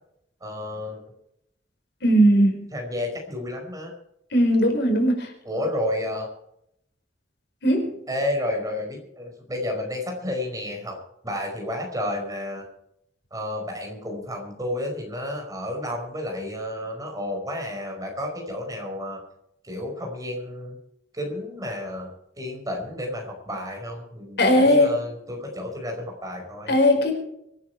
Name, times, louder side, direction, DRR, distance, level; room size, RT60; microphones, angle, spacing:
voice 1, 0.4-1.0 2.7-3.9 5.4-6.3 8.1-11.0 11.2-12.6 13.3-19.2 19.6-20.8 21.1-26.7, left 1 dB, 20° right, 2 dB, 5.2 m, -31 dB
voice 2, 2.0-2.6 4.3-5.3 7.6-7.9 24.4-24.9 26.7-27.1, equal, 65° left, 3 dB, 4.8 m, -18 dB
25.0 x 9.8 x 4.7 m, 0.76 s
head